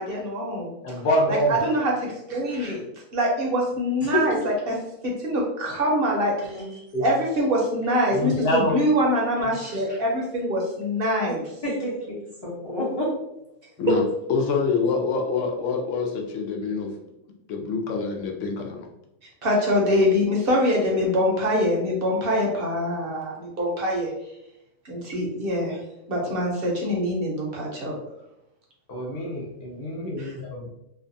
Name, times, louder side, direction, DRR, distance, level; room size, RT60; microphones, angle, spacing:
voice 1, 0.0-0.7 1.3-2.8 3.1-4.4 4.7-4.8 5.0-6.6 7.0-11.4 19.4-24.1 24.8-25.8 26.1-28.0 30.2-30.3, equal, 60° right, -1 dB, 0.8 m, -24 dB
voice 2, 0.8-1.5 6.9-7.0 8.1-8.8 28.9-30.6, equal, 60° left, -2 dB, 0.8 m, -25 dB
voice 3, 4.0-4.4 6.4-6.8 11.6-12.2 12.4-13.1, left 1 dB, 30° left, -8 dB, 0.6 m, -28 dB
voice 4, 14.3-16.9 17.5-18.9, left 5 dB, 85° left, 2 dB, 0.9 m, -26 dB
2.6 x 2.2 x 2.5 m, 0.82 s
omnidirectional pair, 1.2 m